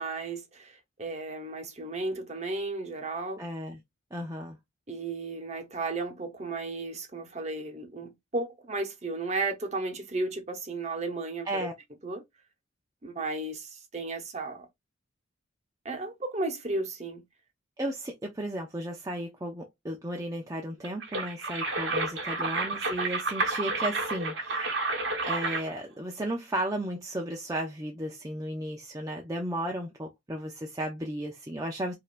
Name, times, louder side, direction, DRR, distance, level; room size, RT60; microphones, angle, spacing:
voice 1, 0.0-3.4 4.9-11.7 12.0-12.2 13.0-14.7 15.8-17.2, right 3 dB, 35° right, 0.9 m, -34 dB
voice 2, 3.4-3.8 4.1-4.6 11.5-11.7 17.8-24.9 25.2-31.9, right 1 dB, 15° right, 0.5 m, -34 dB
sound 1, 20.8-25.8, right 3 dB, 60° right, 1.1 m, -30 dB
5.2 x 2.7 x 2.5 m
head